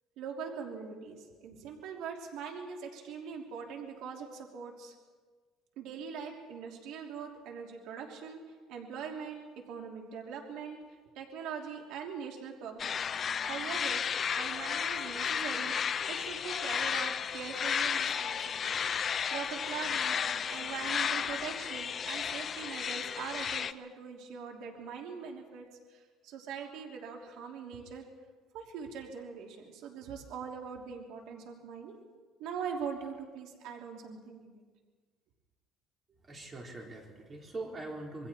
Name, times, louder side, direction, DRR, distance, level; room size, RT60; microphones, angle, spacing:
voice 1, 0.2-4.9 5.8-10.8 11.1-13.0 13.4-14.0 14.4-15.7 16.0-18.8 19.3-28.0 28.5-31.9 32.4-34.6, right 6 dB, 75° right, 1 dB, 3.1 m, -42 dB
sound 1, 12.8-23.7, left 7 dB, 35° left, 0.6 m, -33 dB
voice 2, 36.2-38.3, right 2 dB, 25° right, 0 dB, 4.1 m, -42 dB
27.0 x 22.0 x 4.5 m, 1.4 s
cardioid pair, 130°, 0 cm